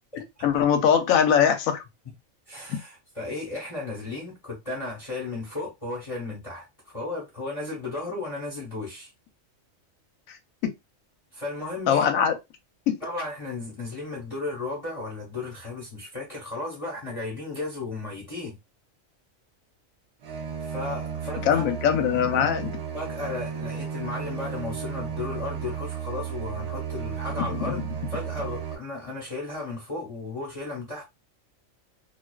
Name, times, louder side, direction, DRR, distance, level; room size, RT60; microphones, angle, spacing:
voice 1, 0.4-1.8 2.7-2.8 10.3-10.4 10.6-10.7 11.9-12.4 12.9-13.0 21.4-22.7 27.6-27.7, left 8 dB, 85° left, 1.0 m, -22 dB
voice 2, 2.5-9.1 11.3-12.0 13.0-18.6 20.6-21.6 22.9-27.8 28.1-31.0, left 3 dB, 30° left, 0.8 m, -34 dB
sound 1, 20.2-28.7, right 8 dB, 60° right, 0.9 m, -34 dB
2.4 x 2.3 x 2.2 m
omnidirectional pair, 1.4 m